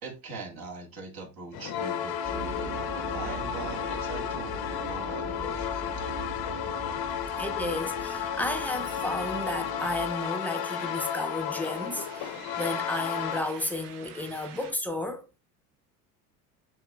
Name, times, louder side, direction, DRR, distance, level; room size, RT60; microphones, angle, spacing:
voice 1, 0.0-6.4, right 3 dB, 50° right, 2.0 m, -42 dB
sound 1, 1.5-13.4, left 8 dB, 55° left, 0.8 m, -33 dB
sound 2, 2.2-10.2, right 2 dB, 20° right, 1.2 m, -41 dB
sound 3, 5.5-5.6 5.9-6.9 7.3-14.7, right 7 dB, 85° right, 0.9 m, -50 dB
voice 2, 7.4-15.4, left 1 dB, 5° left, 0.8 m, -33 dB
7.1 x 3.0 x 2.4 m
hypercardioid pair, 85°, 46 cm